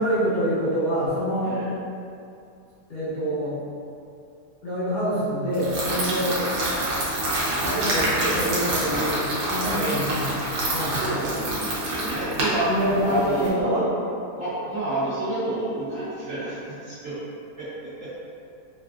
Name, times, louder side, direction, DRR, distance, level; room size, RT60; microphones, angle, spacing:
voice 1, 0.0-1.6 2.9-3.6 4.6-6.5 7.6-10.3 10.7-11.2 12.7-13.9, equal, 55° left, -11 dB, 0.6 m, -26 dB
sound 1, 5.5-13.5, right 1 dB, 80° right, 1.3 m, -27 dB
voice 2, 10.9-13.9 14.4-17.1 17.6-17.7 18.0-18.1, right 2 dB, 60° right, -12 dB, 0.9 m, -29 dB
3.2 x 2.4 x 2.3 m, 2.5 s
omnidirectional pair, 1.8 m